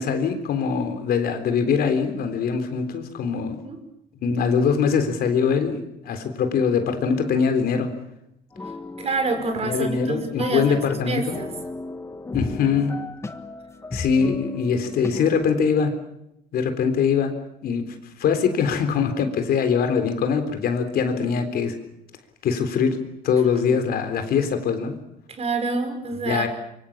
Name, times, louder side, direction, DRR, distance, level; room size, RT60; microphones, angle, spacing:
voice 1, 0.0-3.6 4.2-7.9 9.6-11.4 12.3-13.0 13.9-15.9 16.5-17.3 17.6-17.9 18.2-21.8 22.4-23.0 23.2-24.9 26.2-26.5, left 6 dB, 65° left, 7 dB, 3.8 m, -22 dB
sound 1, 8.5-15.4, left 3 dB, 15° left, 1.5 m, -36 dB
voice 2, 9.0-11.5 25.3-26.5, right 3 dB, 40° right, 7 dB, 5.4 m, -27 dB
25.0 x 24.0 x 7.4 m, 0.82 s
cardioid pair, 110°, 17 cm